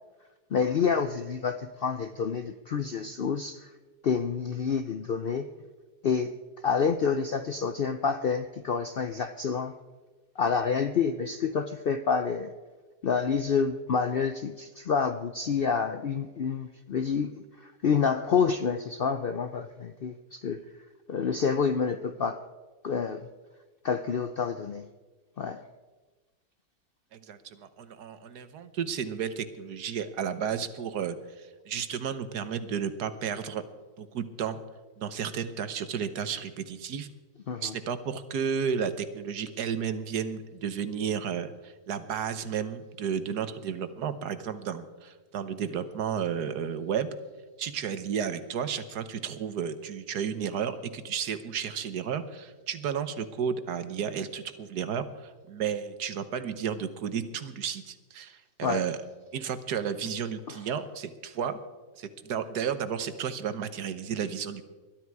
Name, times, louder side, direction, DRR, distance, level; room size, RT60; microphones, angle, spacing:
voice 1, 0.5-3.7 4.0-5.5 6.0-6.3 6.6-9.8 10.4-12.5 13.0-20.6 21.1-22.4 22.8-23.3 23.8-24.9 25.4-25.6 37.5-37.7 58.6-58.9 60.5-60.6, left 6 dB, 65° left, 9 dB, 0.5 m, -28 dB
voice 2, 27.1-33.6 34.0-34.6 35.0-37.1 37.6-47.1 47.6-59.0 59.3-61.6 62.0-64.6, right 7 dB, 80° right, 11 dB, 1.6 m, -32 dB
20.5 x 12.0 x 4.7 m, 1.3 s
omnidirectional pair, 1.7 m